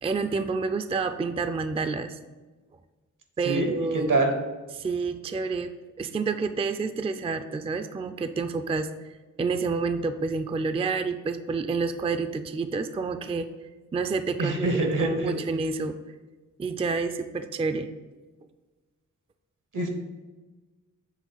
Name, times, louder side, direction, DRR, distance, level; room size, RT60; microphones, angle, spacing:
voice 1, 0.0-2.2 3.4-4.2 4.7-9.1 9.4-13.5 13.9-16.0 16.6-17.9, right 4 dB, 20° right, 10 dB, 0.3 m, -29 dB
voice 2, 3.4-4.3 14.4-15.4 19.7-19.9, right 2 dB, 80° right, 5 dB, 1.1 m, -25 dB
7.4 x 3.2 x 5.6 m, 1.3 s
wide cardioid pair, 95°, 32 cm